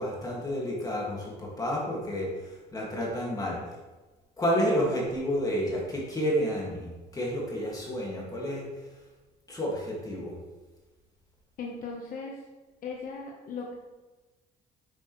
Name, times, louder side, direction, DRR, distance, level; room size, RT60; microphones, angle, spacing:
voice 1, 0.0-3.6 4.4-8.6 9.5-10.3, equal, 20° left, -3 dB, 1.9 m, -30 dB
voice 2, 11.6-12.4 12.8-13.7, left 4 dB, 55° left, -1 dB, 1.0 m, -37 dB
8.1 x 6.5 x 3.1 m, 1.2 s
cardioid pair, 110°, 17 cm